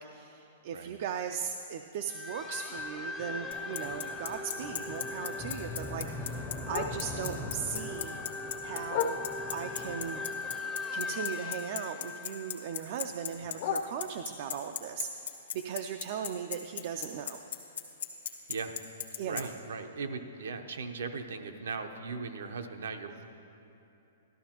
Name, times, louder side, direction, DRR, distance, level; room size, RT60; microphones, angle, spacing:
voice 1, 0.0-8.2 8.6-10.2 10.9-17.4 19.2-19.5, right 8 dB, 45° right, 6 dB, 0.3 m, -38 dB
sound 1, 2.1-13.3, left 3 dB, 5° left, 0.5 m, -39 dB
Bicycle, 3.5-19.4, left 9 dB, 80° left, 1.1 m, -36 dB
Bark, 4.2-7.4 7.8-9.7 10.1-12.0 12.2-14.5 15.0-18.9 19.2-19.3 19.6-20.0 20.5-20.6 20.9-21.0 21.5-21.6, left 7 dB, 45° left, 0.7 m, -41 dB
voice 2, 19.3-23.2, right 4 dB, 80° right, 6 dB, 0.7 m, -38 dB
13.0 x 12.5 x 3.0 m, 2.9 s
hypercardioid pair, 160°, 0 cm